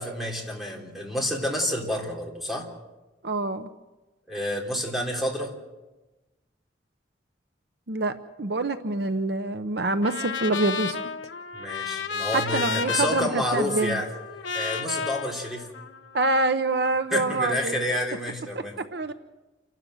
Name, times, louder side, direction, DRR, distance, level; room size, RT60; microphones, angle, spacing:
voice 1, 0.0-2.7 4.3-5.5 11.5-14.1 14.5-15.7 17.1-18.7, left 1 dB, ahead, -2 dB, 3.5 m, -29 dB
voice 2, 3.2-3.7 7.9-11.0 12.3-14.0 16.1-17.8 18.5-18.6 18.9-19.1, right 2 dB, 60° right, 10 dB, 0.8 m, -26 dB
Trumpet, 10.0-16.2, left 6 dB, 85° left, 1.2 m, -32 dB
28.5 x 12.5 x 7.8 m, 1.1 s
head